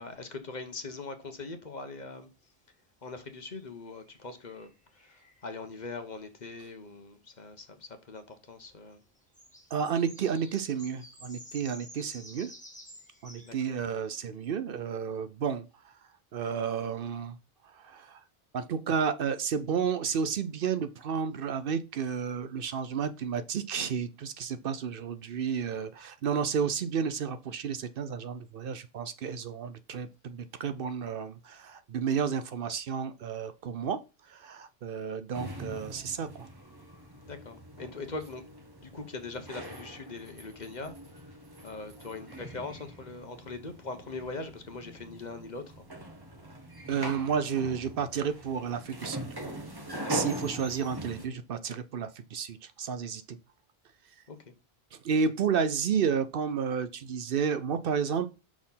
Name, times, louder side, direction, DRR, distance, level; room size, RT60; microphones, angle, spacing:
voice 1, 0.0-2.3 3.0-9.0 13.4-13.8 37.2-38.4 38.8-41.3 41.6-45.9 50.0-50.1 54.3-54.5, left 3 dB, 45° left, 1.1 m, -41 dB
sound 1, 2.2-2.4 4.1-5.9 7.9-8.0 8.6-13.5, equal, 5° left, 1.6 m, -51 dB
voice 2, 9.7-12.5 13.2-16.0 16.3-17.4 17.6-18.2 18.5-36.5 46.9-49.2 50.1-53.4 54.9-58.3, right 6 dB, 65° right, 0.8 m, -31 dB
sound 2, 35.3-51.3, right 1 dB, 25° right, 1.2 m, -42 dB
6.0 x 4.3 x 5.5 m
omnidirectional pair, 1.0 m